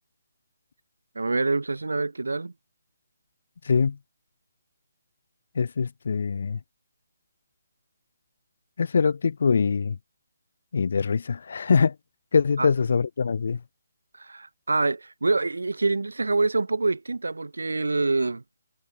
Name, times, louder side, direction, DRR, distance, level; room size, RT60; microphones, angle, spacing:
voice 1, 1.1-2.5 12.6-12.7 14.2-18.4, right 3 dB, 85° right, 0.8 m, -26 dB
voice 2, 3.6-4.0 5.6-6.6 8.8-10.0 10.7-12.0 12.3-13.6, left 5 dB, 60° left, 0.4 m, -23 dB
figure-of-eight pair, 150°, 0 cm